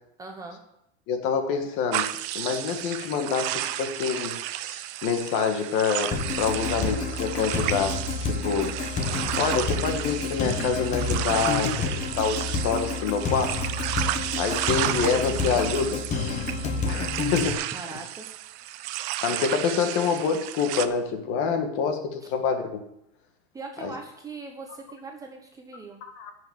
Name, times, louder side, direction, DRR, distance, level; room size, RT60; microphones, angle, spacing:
voice 1, 0.2-0.6 17.7-18.3 23.5-26.0, right 3 dB, 10° right, 2 dB, 0.9 m, -40 dB
voice 2, 1.1-4.4 4.6-8.7 9.4-13.5 14.3-16.4 16.8-17.6 19.2-22.8 23.8-23.9 26.0-26.3, left 6 dB, 40° left, 6 dB, 1.6 m, -27 dB
sound 1, 1.9-20.9, right 14 dB, 40° right, 0.6 m, -32 dB
sound 2, 6.1-17.5, left 4 dB, 20° left, 1.2 m, -29 dB
10.5 x 6.4 x 7.9 m, 0.79 s
supercardioid pair, 165°, 34 cm